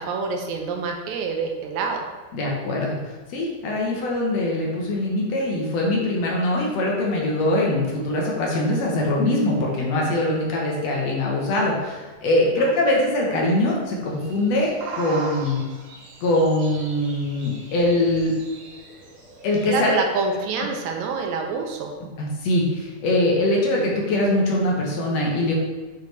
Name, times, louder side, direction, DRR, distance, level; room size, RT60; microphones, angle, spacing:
voice 1, 0.0-2.0 12.5-12.6 19.7-21.9, right 4 dB, 80° right, 3 dB, 2.0 m, -26 dB
voice 2, 2.3-3.0 3.3-15.6 16.2-18.4 19.4-19.9 22.2-25.5, left 1 dB, 70° left, -2 dB, 2.0 m, -22 dB
sound 1, 14.0-20.0, right 3 dB, 60° right, 1.5 m, -39 dB
6.7 x 4.7 x 3.2 m, 1.3 s
omnidirectional pair, 3.3 m